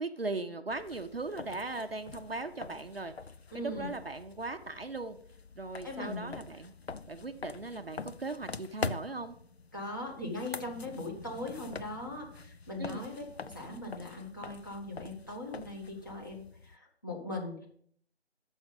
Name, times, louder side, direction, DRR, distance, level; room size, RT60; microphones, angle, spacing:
voice 1, 0.0-3.1 3.5-5.2 5.6-6.7 7.1-9.4 12.8-13.1, right 3 dB, 60° right, 7 dB, 0.6 m, -38 dB
sound 1, 0.7-16.8, left 4 dB, 65° left, 0.5 m, -45 dB
voice 2, 3.5-4.0 5.8-6.4 9.7-17.7, left 1 dB, 20° left, -3 dB, 1.1 m, -40 dB
7.2 x 6.3 x 5.3 m, 0.62 s
figure-of-eight pair, 165°, 34 cm